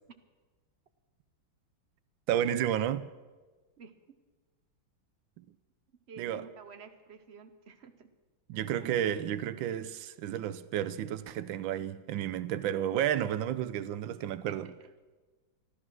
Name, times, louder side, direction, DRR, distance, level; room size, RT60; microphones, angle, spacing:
voice 1, 2.3-3.1 6.2-6.5 8.5-14.7, right 10 dB, 80° right, 1.4 m, -31 dB
voice 2, 6.1-8.1 14.5-14.7, right 6 dB, 45° right, 0.9 m, -50 dB
13.5 x 13.0 x 6.2 m
omnidirectional pair, 2.2 m